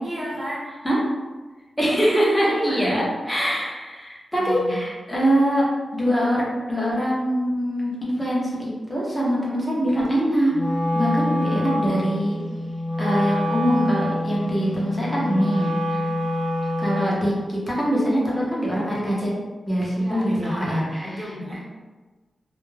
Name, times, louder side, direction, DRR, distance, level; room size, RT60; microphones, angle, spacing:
voice 1, 0.0-0.7 1.9-2.1 2.4-3.1 4.4-4.8 15.9-16.2 20.0-21.6, equal, 30° right, -6 dB, 0.7 m, -34 dB
voice 2, 1.8-5.6 5.9-10.5 10.9-12.4 13.0-15.7 16.8-19.3 19.7-20.8 21.1-21.3, equal, 10° left, -6 dB, 0.6 m, -23 dB
Wind instrument woodwind instrument, 10.5-17.2, left 1 dB, 60° left, 0.6 m, -26 dB
2.2 x 2.1 x 3.1 m, 1.3 s
wide cardioid pair, 150°, 0 cm